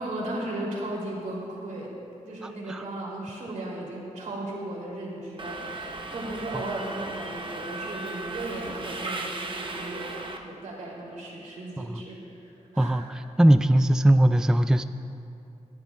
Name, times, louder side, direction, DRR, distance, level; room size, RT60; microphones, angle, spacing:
voice 1, 0.0-1.9 2.3-13.1 13.5-13.6, right 1 dB, 80° right, -3 dB, 2.9 m, -36 dB
voice 2, 2.4-2.8 11.8-12.0 12.8-14.8, right 1 dB, 5° right, 10 dB, 0.3 m, -21 dB
Subway metro underground, 5.4-10.4, right 3 dB, 40° right, 1.0 m, -36 dB
23.0 x 10.5 x 2.3 m, 2.7 s
cardioid pair, 75°, 13 cm